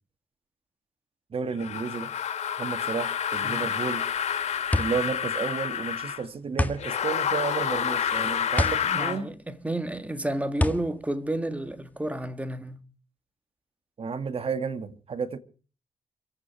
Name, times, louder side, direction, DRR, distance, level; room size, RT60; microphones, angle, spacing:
voice 1, 1.3-2.1 2.6-4.0 4.8-9.3 14.0-15.4, right 5 dB, 55° right, 2.0 m, -32 dB
sound 1, 1.6-6.2 6.8-9.2, left 8 dB, 80° left, 3.0 m, -29 dB
sound 2, 4.0-12.2, left 1 dB, 15° left, 1.8 m, -31 dB
voice 2, 8.9-12.8, right 1 dB, 10° right, 1.7 m, -31 dB
26.5 x 8.9 x 5.8 m
cardioid pair, 70°, 12 cm